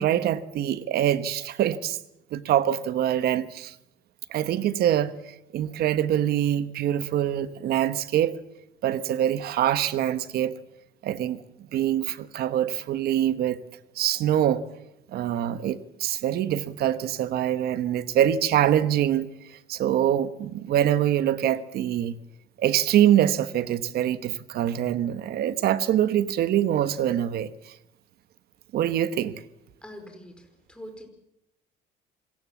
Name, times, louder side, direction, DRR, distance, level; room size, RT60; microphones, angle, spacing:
voice 1, 0.0-2.0 2.3-3.7 4.3-8.4 8.8-10.6 11.0-11.4 11.7-13.6 14.0-14.6 15.1-19.3 19.7-22.2 22.6-27.7 28.7-29.4, right 11 dB, 70° right, 1.3 m, -24 dB
voice 2, 29.8-31.1, equal, 5° left, 5.1 m, -44 dB
27.0 x 18.0 x 7.3 m
cardioid pair, 110°, 17 cm